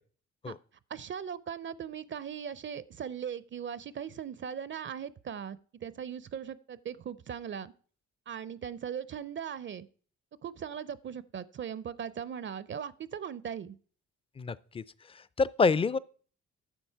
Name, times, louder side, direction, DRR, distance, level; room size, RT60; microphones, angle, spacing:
voice 1, 0.9-7.7 8.3-9.9 10.4-13.8, right 8 dB, 40° right, 0.5 m, -39 dB
voice 2, 14.4-14.8 15.4-16.0, left 4 dB, 20° left, 0.4 m, -26 dB
10.0 x 6.9 x 4.6 m
cardioid pair, 90°, 30 cm